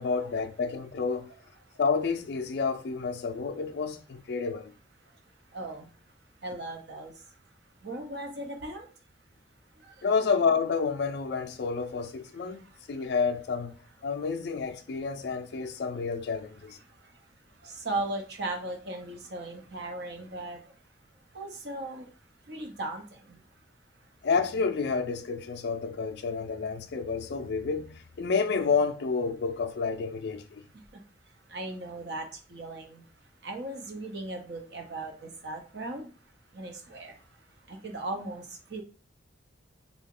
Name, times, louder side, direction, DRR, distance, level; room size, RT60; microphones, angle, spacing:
voice 1, 0.0-1.3 1.8-4.7 10.0-12.6 12.9-13.7 14.0-16.8 24.2-30.6, left 5 dB, 60° left, 0.3 m, -29 dB
voice 2, 5.5-5.9 6.4-7.1 7.8-8.9 17.6-20.6 21.3-22.1 22.5-23.0 23.3-23.4 31.5-32.2 32.5-33.0 33.4-36.1 36.5-37.1 37.7-38.4 38.7-38.8, right 2 dB, 60° right, 0.8 m, -37 dB
3.6 x 2.1 x 3.7 m
head